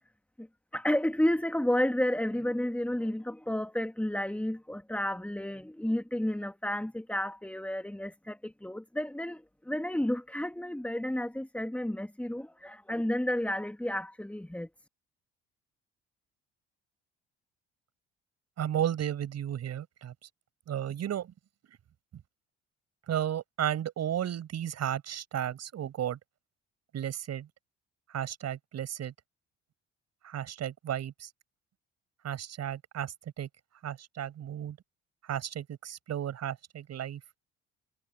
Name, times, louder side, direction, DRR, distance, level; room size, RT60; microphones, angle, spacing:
voice 1, 0.7-14.7, left 1 dB, 5° left, 2.5 m, -31 dB
voice 2, 18.6-20.1 20.7-21.3 23.1-26.2 26.9-27.5 28.1-29.1 30.2-31.3 32.2-33.5 33.8-34.8 35.2-37.2, right 10 dB, 55° right, 6.4 m, -34 dB
hypercardioid pair, 55°, 31 cm